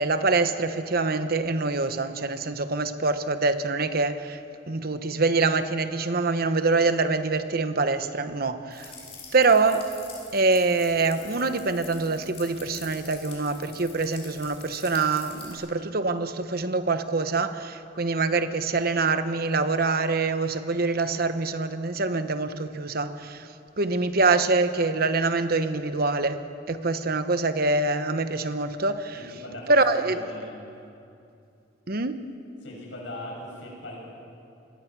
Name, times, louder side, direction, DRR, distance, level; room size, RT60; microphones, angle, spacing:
voice 1, 0.0-4.4 4.7-8.9 9.3-9.9 10.3-23.5 23.8-26.4 26.7-29.2 29.7-30.2 31.9-32.2, right 3 dB, 55° right, 10 dB, 1.1 m, -25 dB
sound 1, 8.7-15.5, left 5 dB, 35° left, 5.4 m, -45 dB
voice 2, 29.1-29.8 30.0-30.6 32.6-34.0, left 1 dB, 85° left, -2 dB, 7.1 m, -40 dB
26.5 x 21.5 x 6.1 m, 2.6 s
head